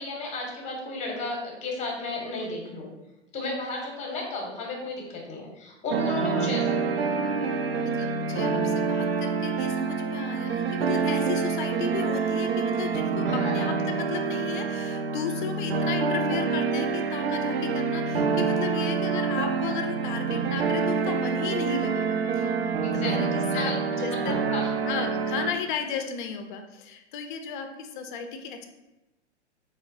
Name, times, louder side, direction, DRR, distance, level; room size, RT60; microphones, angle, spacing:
voice 1, 0.0-2.9 3.3-7.1 13.3-13.7 22.8-23.8 24.2-24.7, left 2 dB, 20° left, 0 dB, 0.9 m, -34 dB
sound 1, 5.9-25.5, right 5 dB, 60° right, 0.5 m, -27 dB
voice 2, 7.8-23.7 24.0-24.3 24.8-28.7, left 6 dB, 45° left, 6 dB, 0.5 m, -34 dB
4.4 x 2.1 x 3.8 m, 1.0 s
figure-of-eight pair, 105°, 35 cm